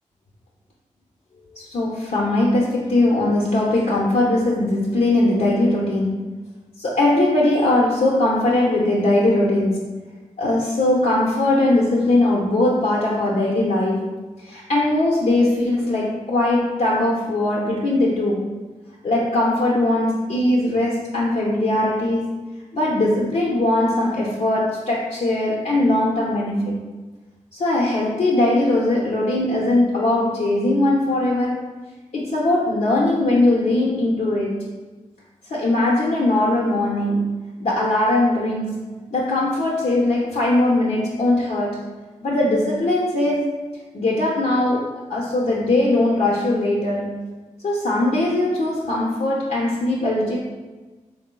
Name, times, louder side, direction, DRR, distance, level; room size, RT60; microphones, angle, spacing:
voice 1, 1.5-6.2 6.8-9.8 10.4-14.1 14.4-18.5 19.0-22.3 22.7-26.8 27.5-31.6 32.1-34.7 35.5-38.8 39.1-41.9 42.2-43.5 43.9-47.1 47.6-50.4, left 1 dB, 65° left, -4 dB, 0.6 m, -20 dB
4.0 x 3.6 x 2.2 m, 1.3 s
cardioid pair, 60°, 13 cm